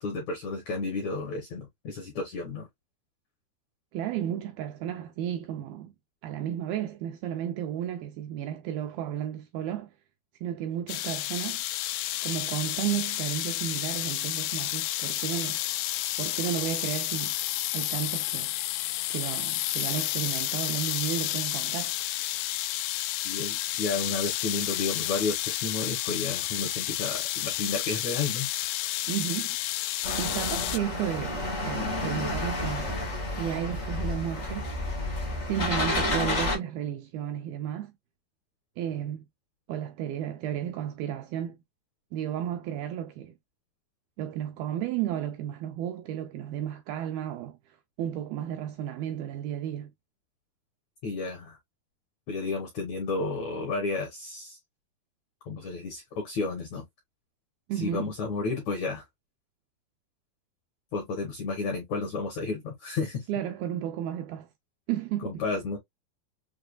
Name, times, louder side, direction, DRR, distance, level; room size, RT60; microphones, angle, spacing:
voice 1, 0.0-2.7 23.2-28.5 51.0-51.6 52.3-54.6 55.5-56.8 57.7-59.0 60.9-63.2 65.2-65.8, left 3 dB, 70° left, 1.7 m, -32 dB
voice 2, 3.9-5.9 6.2-9.9 10.4-11.6 12.2-15.6 16.2-17.4 17.7-18.5 19.1-22.0 29.1-29.6 30.2-32.9 33.4-34.7 35.4-37.9 38.8-39.2 39.7-41.6 42.1-43.3 44.2-47.6 48.0-49.9 57.7-58.1 63.3-64.5 64.9-65.4, right 10 dB, 85° right, 2.1 m, -33 dB
sound 1, 10.9-30.8, left 15 dB, 90° left, 2.7 m, -31 dB
sound 2, 30.0-36.6, left 2 dB, 45° left, 0.8 m, -30 dB
6.5 x 2.3 x 2.3 m
omnidirectional pair, 4.7 m